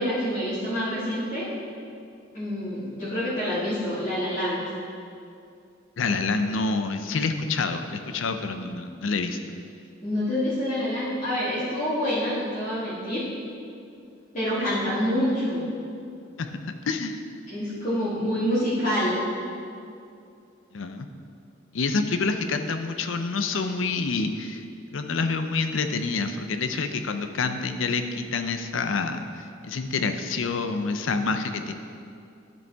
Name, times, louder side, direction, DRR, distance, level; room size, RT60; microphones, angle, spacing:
voice 1, 0.0-1.5 2.3-4.6 10.0-13.2 14.3-15.6 17.5-19.2, equal, 40° left, -13 dB, 1.9 m, -27 dB
voice 2, 6.0-9.6 16.4-17.2 20.7-21.1 21.7-24.6 24.9-31.7, left 4 dB, 90° left, 7 dB, 0.6 m, -27 dB
12.5 x 5.3 x 3.5 m, 2.5 s
head